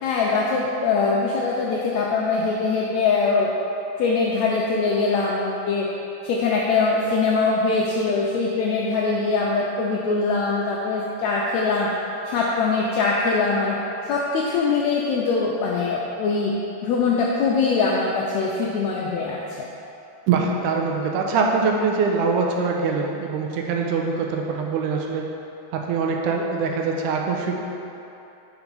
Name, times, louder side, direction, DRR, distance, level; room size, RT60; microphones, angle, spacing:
voice 1, 0.0-3.5 4.0-5.9 6.2-11.9 12.2-13.8 14.0-16.5 16.8-19.4, left 4 dB, 85° left, -3 dB, 1.6 m, -22 dB
voice 2, 20.3-25.3 25.7-27.6, right 4 dB, 80° right, 1 dB, 2.0 m, -23 dB
5.2 x 4.9 x 5.2 m, 2.9 s
omnidirectional pair, 3.7 m